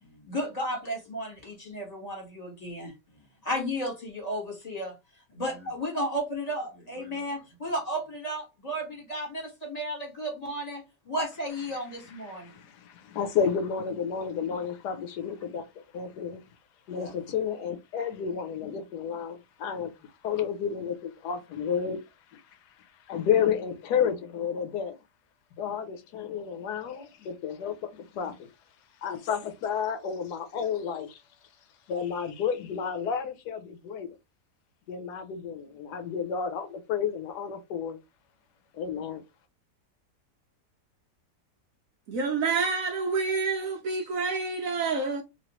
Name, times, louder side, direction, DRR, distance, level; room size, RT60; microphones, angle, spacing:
voice 1, 0.2-2.9 3.4-4.9 5.3-12.5 16.9-17.1, equal, 25° left, 1.4 m, -33 dB
voice 2, 12.0-15.7 15.9-16.4 16.9-22.0 22.3-22.4 23.1-24.9 25.6-28.5 29.0-31.2 31.9-34.1 34.9-38.0 38.7-39.2, left 7 dB, 80° left, 1.2 m, -31 dB
voice 3, 42.1-45.2, right 4 dB, 65° right, 1.0 m, -28 dB
3.1 x 2.8 x 2.9 m
omnidirectional pair, 1.8 m